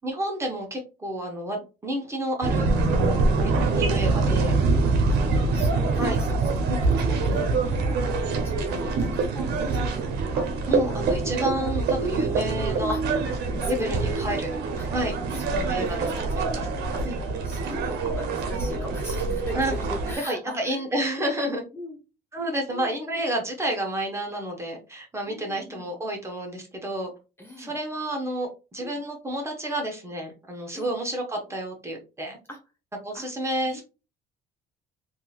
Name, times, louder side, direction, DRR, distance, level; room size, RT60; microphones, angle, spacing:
voice 1, 0.0-2.7 3.4-4.5 6.0-6.2 6.7-6.8 10.3-13.0 13.7-14.5 14.9-15.2 15.5-16.1 16.3-16.7 17.0-17.2 19.5-19.7 20.2-21.6 22.3-27.1 27.6-32.4 33.0-33.8, right 1 dB, 15° right, 1 dB, 1.0 m, -30 dB
sound 1, 2.4-20.2, right 3 dB, 75° right, 0.8 m, -25 dB
voice 2, 5.5-6.6 6.8-10.4 10.8-11.3 12.9-13.0 13.6-14.5 14.8-14.9 15.3-20.9 21.7-22.0 22.7-23.2 25.2-25.9 27.4-27.7 28.8-29.0 30.7-30.9 32.5-32.6 33.1-33.3 33.6-33.8, left 1 dB, 15° left, 1 dB, 0.9 m, -41 dB
3.7 x 2.6 x 2.4 m, 0.30 s
cardioid pair, 110°, 17 cm